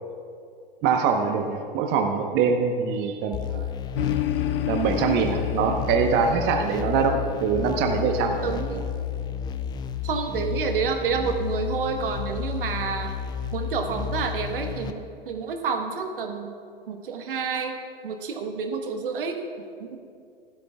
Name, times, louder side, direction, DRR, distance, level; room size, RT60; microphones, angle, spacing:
voice 1, 0.8-3.7 4.7-8.4, right 5 dB, 35° right, 3 dB, 1.0 m, -23 dB
sound 1, 3.3-14.9, left 8 dB, 15° left, 0.4 m, -32 dB
sound 2, 3.9-9.6, left 11 dB, 70° left, 0.6 m, -32 dB
voice 2, 5.6-6.2 8.4-8.8 10.0-13.1 13.5-16.5 16.9-17.8 18.0-19.4 19.8-20.0, right 5 dB, 65° right, 5 dB, 1.2 m, -29 dB
16.5 x 12.5 x 2.3 m, 2.3 s
figure-of-eight pair, 95°, 29 cm